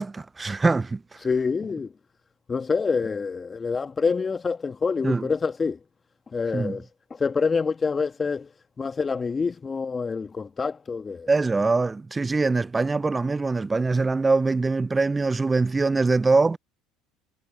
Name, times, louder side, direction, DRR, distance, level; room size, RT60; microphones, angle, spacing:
voice 1, 0.0-1.2 5.0-5.3 6.5-6.8 11.3-16.6, right 3 dB, 20° right, 0.4 m, -23 dB
voice 2, 1.2-1.9 2.5-5.8 6.3-6.9 7.2-8.5 8.8-11.3, left 5 dB, 30° left, 2.0 m, -26 dB
hypercardioid pair, 70°, 0 cm